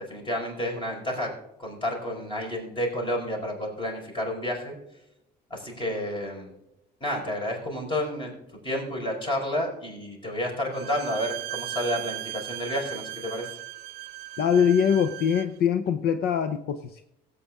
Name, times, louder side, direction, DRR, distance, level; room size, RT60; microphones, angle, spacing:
voice 1, 0.1-1.3 1.6-4.7 5.5-6.5 7.0-8.3 8.6-13.5, equal, 30° left, 0 dB, 4.9 m, -30 dB
Bowed string instrument, 10.7-15.6, right 17 dB, 85° right, 0.7 m, -37 dB
voice 2, 14.4-17.0, left 8 dB, 70° left, 9 dB, 0.8 m, -23 dB
16.5 x 8.4 x 3.6 m, 0.85 s
cardioid pair, 110°, 17 cm